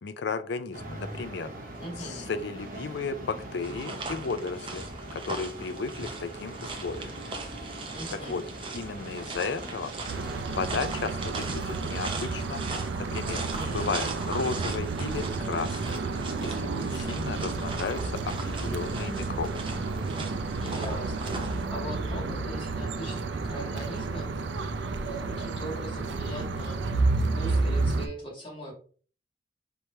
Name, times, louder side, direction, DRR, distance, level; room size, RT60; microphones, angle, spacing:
voice 1, 0.0-1.5 2.0-4.9 5.1-7.2 8.1-8.4 8.7-9.9 10.5-12.7 13.0-16.0 16.4-19.6, left 4 dB, 80° left, 11 dB, 0.5 m, -34 dB
sound 1, 0.7-10.4, right 1 dB, 50° right, 1.0 m, -42 dB
voice 2, 1.8-2.3 7.9-8.4 13.5-13.9 20.6-24.3 25.1-27.0 27.3-28.7, equal, 30° left, -4 dB, 2.0 m, -40 dB
sound 2, 3.6-21.7, right 3 dB, 30° right, 0.6 m, -39 dB
sound 3, 10.1-28.1, right 3 dB, 90° right, 0.5 m, -31 dB
4.5 x 3.3 x 2.7 m, 0.42 s
head